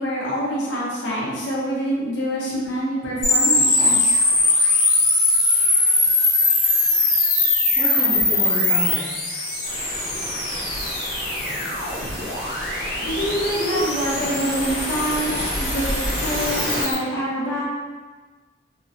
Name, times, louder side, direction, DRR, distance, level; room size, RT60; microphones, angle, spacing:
voice 1, 0.0-4.2 12.9-17.6, equal, 75° left, -6 dB, 0.8 m, -26 dB
sound 1, 3.2-16.9, left 2 dB, 50° left, 0.7 m, -21 dB
voice 2, 7.8-9.1 13.7-14.1 16.9-17.0 17.3-17.6, right 1 dB, ahead, -9 dB, 0.4 m, -30 dB
sound 2, 9.6-16.8, equal, 60° right, 0.9 m, -30 dB
2.9 x 2.0 x 2.7 m, 1.4 s
head